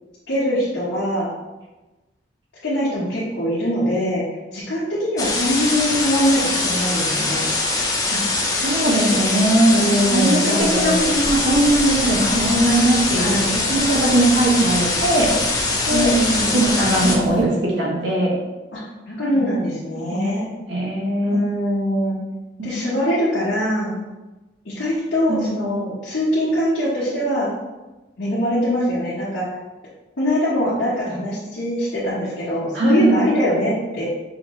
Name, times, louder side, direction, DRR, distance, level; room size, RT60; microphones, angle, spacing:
voice 1, 0.3-1.3 2.6-4.2 4.5-7.5 9.7-11.1 13.1-13.6 15.9-16.9 18.7-18.8 19.1-20.5 21.2-22.2 22.6-24.0 24.6-27.5 28.2-29.5 30.2-34.0, equal, 85° left, -11 dB, 1.3 m, -22 dB
sound 1, 5.2-17.2, left 3 dB, 20° left, 0.5 m, -22 dB
voice 2, 8.6-9.7 10.1-15.3 15.9-16.1 16.5-18.4 19.3-19.4 20.1-21.4 22.6-22.7 25.3-25.6 32.7-33.1, right 1 dB, 85° right, -3 dB, 1.2 m, -20 dB
sound 2, 10.6-17.4, equal, 40° right, 0.8 m, -34 dB
5.6 x 2.8 x 3.1 m, 1.1 s
head